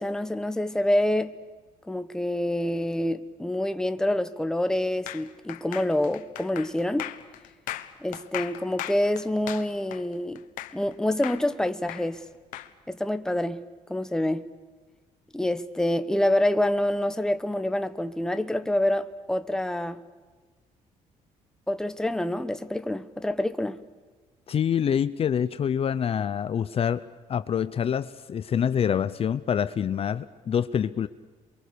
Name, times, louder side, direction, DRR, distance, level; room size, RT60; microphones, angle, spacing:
voice 1, 0.0-1.3 1.9-7.1 8.0-10.4 10.7-12.2 12.9-13.6 13.9-14.5 15.3-20.0 21.7-23.8, left 1 dB, 5° left, 1.1 m, -27 dB
sound 1, 5.1-10.9 11.2-12.7, left 14 dB, 90° left, 1.2 m, -37 dB
voice 2, 24.5-31.1, left 8 dB, 45° left, 0.7 m, -26 dB
28.0 x 23.5 x 6.8 m
cardioid pair, 105°, 13 cm